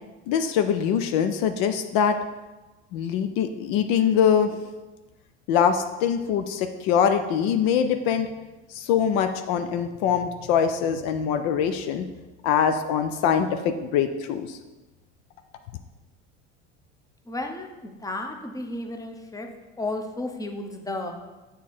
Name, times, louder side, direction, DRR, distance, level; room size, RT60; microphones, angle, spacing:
voice 1, 0.3-2.2 2.9-4.6 5.5-8.3 8.7-12.1 12.4-14.6, left 8 dB, 65° left, 8 dB, 0.6 m, -23 dB
voice 2, 17.3-19.5 19.8-21.1, left 2 dB, 10° left, 4 dB, 0.8 m, -33 dB
7.2 x 3.7 x 4.3 m, 1.1 s
hypercardioid pair, 75°, 35 cm